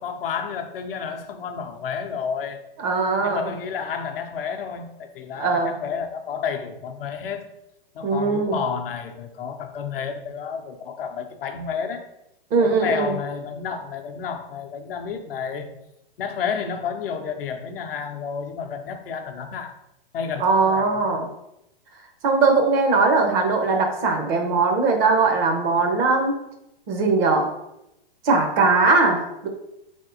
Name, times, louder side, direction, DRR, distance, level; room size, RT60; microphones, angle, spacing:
voice 1, 0.0-2.6 3.2-7.4 7.9-12.0 12.6-15.7 16.2-19.7 20.1-21.2, left 6 dB, 70° left, 5 dB, 0.6 m, -31 dB
voice 2, 2.8-3.5 5.4-5.7 8.0-8.6 12.5-13.1 20.4-21.3 22.2-26.4 26.9-27.5 28.2-29.5, right 4 dB, 30° right, 3 dB, 0.7 m, -20 dB
3.8 x 3.5 x 2.6 m, 0.86 s
hypercardioid pair, 120°, 30 cm